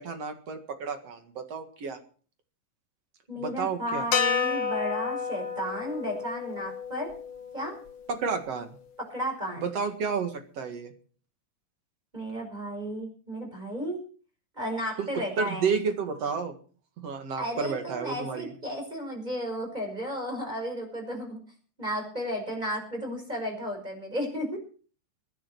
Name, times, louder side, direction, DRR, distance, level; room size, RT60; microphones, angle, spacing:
voice 1, 0.0-2.0 3.4-4.1 8.1-8.7 9.6-10.9 15.0-16.5 17.0-18.5, right 5 dB, 55° right, 6 dB, 2.7 m, -31 dB
voice 2, 3.3-7.1 7.5-7.7 9.1-9.7 12.1-14.0 14.6-15.7 17.4-21.4 21.8-24.6, equal, 10° right, 2 dB, 5.7 m, -33 dB
sound 1, 4.1-8.5, left 6 dB, 55° left, 2.2 m, -31 dB
23.0 x 10.0 x 4.6 m, 0.41 s
omnidirectional pair, 3.7 m